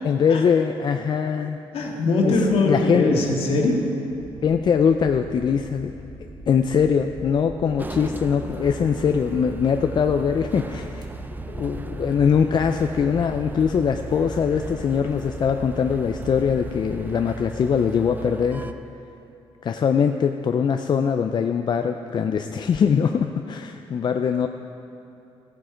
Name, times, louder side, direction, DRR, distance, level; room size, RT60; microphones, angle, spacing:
voice 1, 0.0-1.6 2.2-3.2 4.4-5.9 6.5-11.1 11.5-18.7 19.6-24.5, left 7 dB, 45° left, 6 dB, 0.4 m, -22 dB
voice 2, 1.7-3.9, left 2 dB, 70° left, 0 dB, 1.8 m, -21 dB
sound 1, 4.1-17.1, right 1 dB, 45° right, 1.5 m, -41 dB
sound 2, 7.8-18.7, right 3 dB, 20° right, 0.5 m, -37 dB
14.5 x 7.6 x 5.1 m, 2.8 s
cardioid pair, 90°, 10 cm